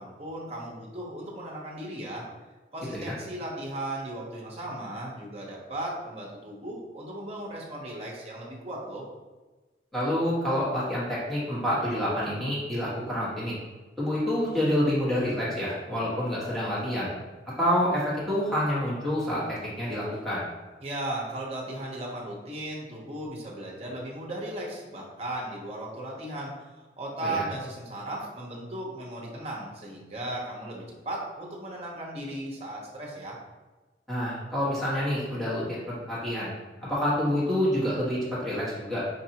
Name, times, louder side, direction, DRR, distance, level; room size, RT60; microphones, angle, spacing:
voice 1, 0.0-2.3 2.7-9.0 20.8-33.4, right 1 dB, 35° right, -2 dB, 0.8 m, -36 dB
voice 2, 9.9-13.5 14.0-17.1 17.6-19.4 19.8-20.4 27.2-27.4 34.1-36.5 36.8-39.0, equal, ahead, -10 dB, 1.2 m, -27 dB
5.2 x 2.6 x 2.8 m, 1.2 s
head